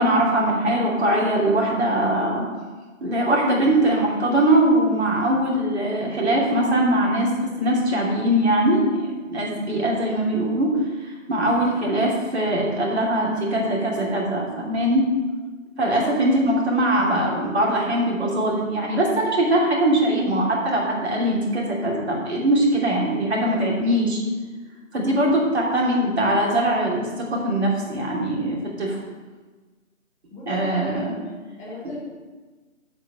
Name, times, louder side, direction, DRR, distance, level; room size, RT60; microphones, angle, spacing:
voice 1, 0.0-2.5 3.0-7.3 7.6-10.7 11.3-15.0 15.8-24.2 24.9-29.0 30.5-31.1, right 1 dB, 50° right, -3 dB, 2.8 m, -21 dB
voice 2, 15.9-16.3 30.3-32.0, equal, 10° left, -8 dB, 1.3 m, -37 dB
7.7 x 5.4 x 7.3 m, 1.3 s
figure-of-eight pair, 150°, 40 cm